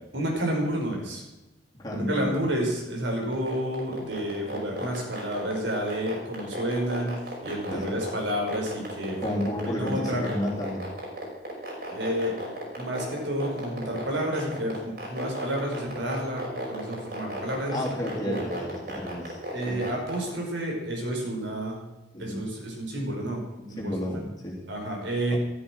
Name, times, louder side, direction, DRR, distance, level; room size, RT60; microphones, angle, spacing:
voice 1, 0.1-1.2 2.0-7.1 7.4-9.2 9.6-10.2 11.9-17.8 18.2-18.4 19.5-21.8 22.2-23.4 23.8-23.9 24.7-25.4, right 1 dB, 80° right, 0 dB, 5.6 m, -30 dB
voice 2, 1.7-2.3 7.7-7.9 9.2-10.9 17.7-19.4 19.6-19.9 22.1-22.4 23.6-24.7 25.3-25.4, left 1 dB, 20° left, -4 dB, 3.3 m, -32 dB
sound 1, 3.3-20.3, right 1 dB, 55° right, 5.7 m, -34 dB
14.0 x 13.0 x 6.4 m, 1.0 s
head